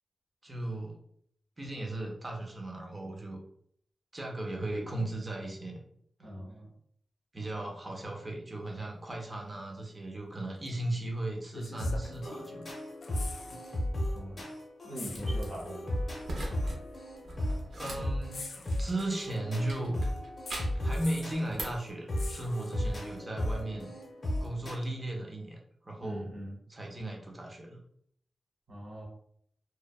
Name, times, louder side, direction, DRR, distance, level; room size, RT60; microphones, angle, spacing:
voice 1, 0.4-1.0 1.6-3.4 4.1-5.8 7.3-12.7 13.4-13.6 17.4-17.5 17.8-20.0 20.7-23.9 24.4-25.6 25.8-26.3 26.7-27.8, right 1 dB, 20° right, -1 dB, 0.4 m, -36 dB
voice 2, 6.2-6.7 14.1-14.4 14.8-16.0 26.0-26.6 28.7-29.1, equal, 40° right, -4 dB, 1.1 m, -41 dB
sound 1, 10.7-10.8 11.5-12.6 12.9-13.8 14.1-14.2 14.9-15.8 16.8-16.9 18.3-19.4 20.5-21.4 22.2-23.1 24.8-24.9, left 3 dB, 60° left, 0.3 m, -46 dB
sound 2, 11.8-24.7, left 1 dB, 30° left, 0.7 m, -35 dB
sound 3, 15.1-15.5 16.2-16.8 17.1-19.2 19.7-20.9 21.3-21.9, right 1 dB, 75° right, 0.5 m, -41 dB
2.7 x 2.1 x 2.2 m, 0.67 s
wide cardioid pair, 170°, 0 cm